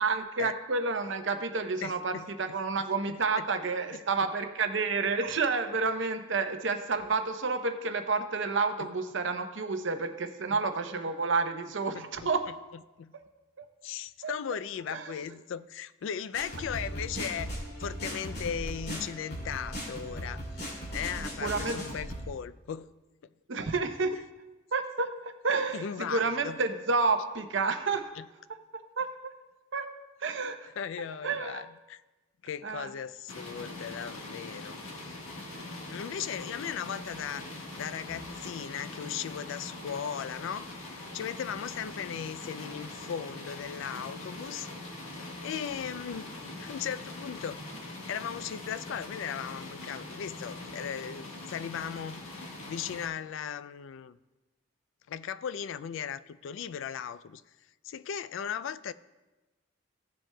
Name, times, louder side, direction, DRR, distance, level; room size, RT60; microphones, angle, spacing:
voice 1, 0.0-12.4 13.6-13.7 14.2-14.3 14.9-15.1 21.2-21.8 23.5-24.2 24.7-28.1 29.0-29.3 29.7-29.9 30.2-30.7 31.2-31.6 32.6-32.9, right 4 dB, 60° right, 7 dB, 0.7 m, -30 dB
voice 2, 1.8-2.3 3.1-3.4 3.9-4.3 10.5-10.6 11.9-12.3 13.0-13.1 13.8-17.5 17.8-22.9 24.1-24.2 25.7-26.6 28.2-28.3 30.8-32.0 32.4-35.2 35.9-37.4 37.8-40.7 41.1-44.7 45.4-46.3 46.6-47.6 48.1-54.2 55.1-57.4 57.8-58.9, left 8 dB, 65° left, 16 dB, 0.3 m, -37 dB
sound 1, 16.3-22.2, equal, 50° left, 2.5 m, -38 dB
sound 2, 33.3-53.1, left 2 dB, 80° left, 1.5 m, -42 dB
15.5 x 7.5 x 2.2 m, 1.1 s
head